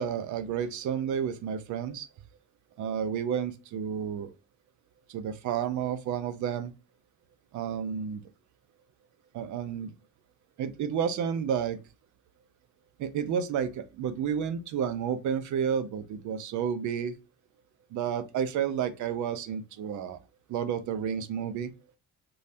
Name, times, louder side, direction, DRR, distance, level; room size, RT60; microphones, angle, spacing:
voice 1, 0.0-2.1 2.8-4.3 5.1-6.7 7.5-8.2 9.3-9.9 10.6-11.8 13.0-17.1 17.9-20.2 20.5-21.7, right 8 dB, 75° right, 0.6 m, -31 dB
3.1 x 2.3 x 2.6 m
cardioid pair, 90°, 30 cm